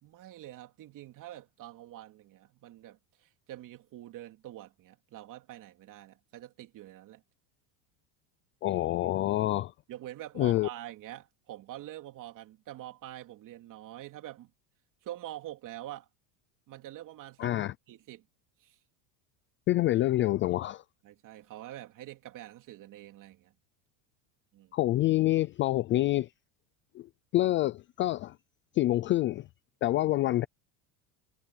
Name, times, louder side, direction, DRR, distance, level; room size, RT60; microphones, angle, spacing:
voice 1, 0.0-7.2 9.9-14.5 15.0-16.1 16.7-18.3 18.6-18.8 21.0-23.5 24.5-24.7, right 14 dB, 40° right, 3.1 m, -46 dB
voice 2, 8.6-9.7 10.4-10.7 17.4-17.7 19.7-20.8 24.7-26.3 26.9-27.1 27.3-28.3 28.7-29.4 29.8-30.5, left 15 dB, 30° left, 0.4 m, -27 dB
supercardioid pair, 145°, 47 cm